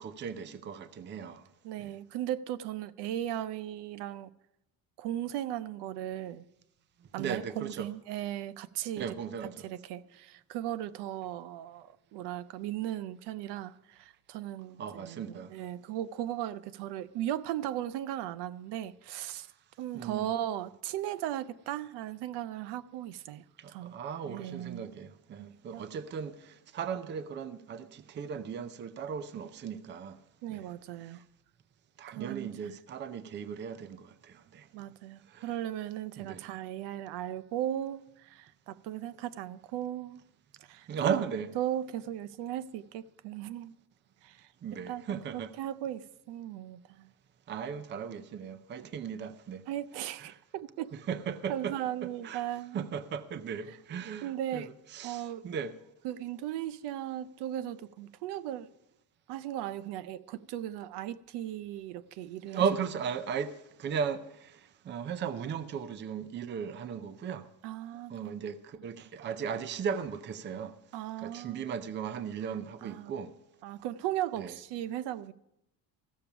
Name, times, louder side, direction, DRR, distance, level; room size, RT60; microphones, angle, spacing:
voice 1, 0.0-1.4 1.8-1.9 7.2-7.9 9.0-9.7 14.8-15.5 19.9-20.3 23.6-30.2 30.5-30.7 32.0-34.7 35.3-35.5 36.2-36.5 40.9-41.5 44.6-45.5 47.5-49.6 50.2-50.4 51.1-51.7 52.0-52.4 52.7-54.7 54.9-55.8 62.5-64.6 64.8-67.5 68.1-70.7 71.2-73.3 74.4-74.6, right 7 dB, 30° right, 0.5 m, -36 dB
voice 2, 1.6-4.3 5.0-6.4 7.1-9.2 9.6-19.5 19.8-23.9 24.2-24.9 25.4-25.8 30.4-31.2 32.1-32.7 34.7-40.2 40.7-41.2 41.6-43.7 44.2-47.1 49.7-50.9 51.5-52.8 54.2-54.7 55.0-55.4 56.0-58.7 59.3-62.6 67.6-68.3 70.9-71.6 72.8-73.1 73.6-75.3, right 12 dB, 85° right, 0.6 m, -37 dB
14.5 x 6.9 x 5.9 m
cardioid pair, 170°, 39 cm